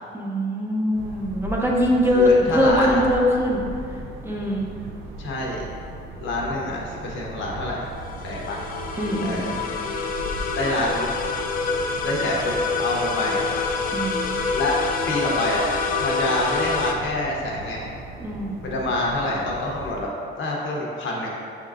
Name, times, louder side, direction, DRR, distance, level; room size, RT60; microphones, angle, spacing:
voice 1, 0.1-3.6 4.2-4.7 9.0-9.4 13.9-14.2 18.2-18.6, left 1 dB, 10° right, -3 dB, 0.7 m, -22 dB
sound 1, 0.9-20.0, right 2 dB, 90° right, 0.5 m, -38 dB
voice 2, 2.1-3.0 5.2-5.7 6.2-7.9 8.2-8.7 9.2-9.6 10.5-11.1 12.0-12.5 12.8-13.5 14.5-14.8 15.1-15.6 16.0-17.9 18.6-20.1 20.4-21.3, left 2 dB, 75° left, -2 dB, 0.9 m, -26 dB
sound 2, 7.9-16.9, left 4 dB, 45° left, 0.4 m, -27 dB
5.4 x 3.7 x 2.4 m, 2.4 s
cardioid pair, 90°, 20 cm